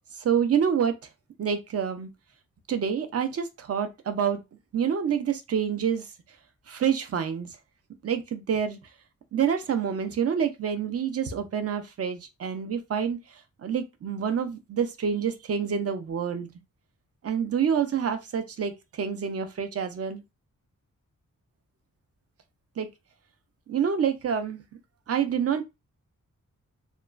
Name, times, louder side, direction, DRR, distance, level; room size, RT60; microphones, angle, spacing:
voice 1, 0.2-0.9 1.4-2.1 2.7-4.4 4.7-6.0 6.7-7.5 8.0-8.8 9.3-13.2 13.6-16.5 17.2-20.2 22.8-22.9 23.7-24.6 25.1-25.6, right 7 dB, 50° right, 0.5 m, -27 dB
2.9 x 2.3 x 2.4 m
wide cardioid pair, 130°, 31 cm